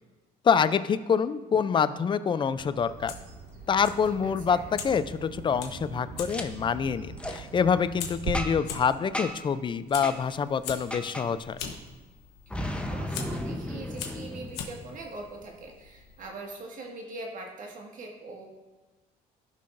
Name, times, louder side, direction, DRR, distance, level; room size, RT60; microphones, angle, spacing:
voice 1, 0.4-3.1 3.7-11.6, left 6 dB, 30° left, 14 dB, 0.4 m, -26 dB
Bird vocalization bird call bird song, 2.6-8.3, right 6 dB, 75° right, 1.1 m, -42 dB
Fire, 2.9-16.3, left 7 dB, 85° left, 1.1 m, -44 dB
voice 2, 4.2-4.6 12.5-18.5, right 2 dB, 50° right, 0 dB, 1.8 m, -42 dB
Boom, 6.3-6.4 7.2-7.4 8.3-8.7 9.1-9.5 10.0-10.2 10.9-11.3 12.5-15.2, left 1 dB, 5° left, 0.8 m, -34 dB
15.5 x 5.7 x 2.6 m, 1.2 s
cardioid pair, 110°, 17 cm